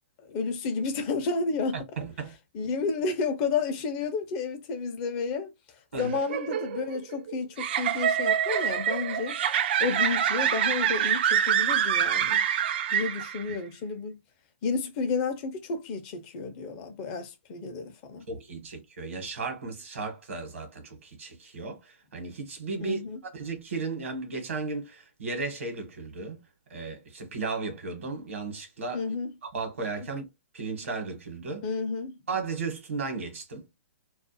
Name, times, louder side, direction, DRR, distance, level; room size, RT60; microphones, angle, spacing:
voice 1, 0.2-1.8 2.5-5.5 5.9-9.4 9.8-12.4 12.9-14.2 14.6-18.2 22.8-23.2 28.9-29.3 31.6-32.2, left 4 dB, 30° left, 0.5 m, -31 dB
voice 2, 2.0-2.3 5.9-6.2 18.3-26.4 26.7-29.1 29.4-30.3 30.5-31.7 32.3-33.6, right 4 dB, 80° right, 1.1 m, -35 dB
sound 1, 5.9-13.6, right 9 dB, 50° right, 0.3 m, -26 dB
2.4 x 2.1 x 2.6 m
hypercardioid pair, 150°, 7 cm